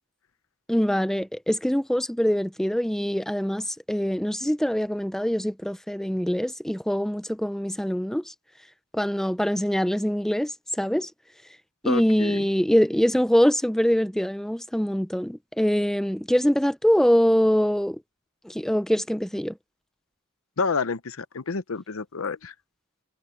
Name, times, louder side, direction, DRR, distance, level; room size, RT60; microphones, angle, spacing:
voice 1, 0.7-8.3 8.9-10.5 10.8-11.1 11.8-18.0 18.4-19.5, equal, ahead, 0.5 m, -24 dB
voice 2, 11.8-12.5 20.6-22.5, left 4 dB, 70° left, 0.8 m, -29 dB
head